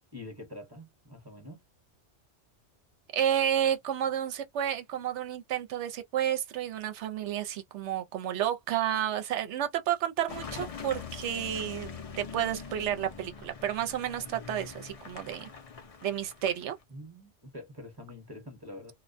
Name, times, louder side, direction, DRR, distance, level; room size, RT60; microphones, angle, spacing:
voice 1, 0.1-1.6 16.9-18.9, left 1 dB, 20° right, 0.8 m, -45 dB
voice 2, 3.1-15.5 16.0-16.8, right 10 dB, 75° right, 0.9 m, -31 dB
Car passing by / Engine, 10.3-16.8, left 6 dB, 50° left, 0.4 m, -43 dB
2.3 x 2.1 x 2.5 m
omnidirectional pair, 1.2 m